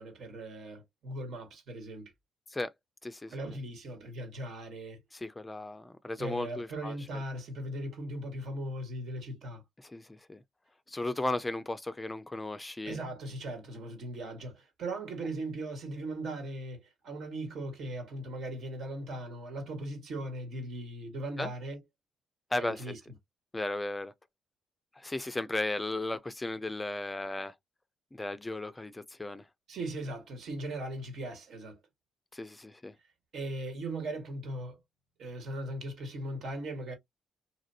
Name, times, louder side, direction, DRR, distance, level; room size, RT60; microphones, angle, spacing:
voice 1, 0.0-2.1 3.3-5.0 6.2-9.6 12.8-21.8 22.6-23.0 29.7-31.8 33.3-34.8 35.2-36.9, right 1 dB, 65° right, 1.7 m, -38 dB
voice 2, 3.0-3.3 5.1-6.9 9.8-10.4 10.9-13.0 21.4-21.5 22.5-22.8 23.5-24.1 25.0-27.5 28.1-29.4 32.3-32.9, left 2 dB, 15° left, 0.4 m, -35 dB
2.9 x 2.5 x 2.7 m
cardioid pair, 90°, 0 cm